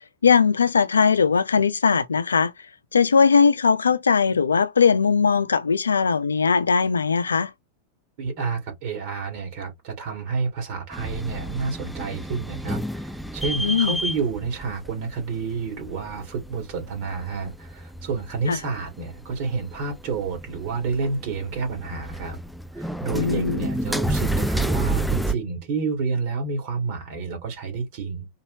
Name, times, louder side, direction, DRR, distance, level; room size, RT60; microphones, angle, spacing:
voice 1, 0.2-2.5 2.9-7.5 13.6-14.0 18.5-18.6 23.1-23.7, left 5 dB, 75° left, 0.4 m, -19 dB
voice 2, 8.2-22.4 22.7-28.3, right 5 dB, 45° right, 2.2 m, -29 dB
sound 1, 10.9-25.3, right 1 dB, ahead, 0.4 m, -30 dB
4.0 x 2.8 x 2.7 m
figure-of-eight pair, 90°, 0 cm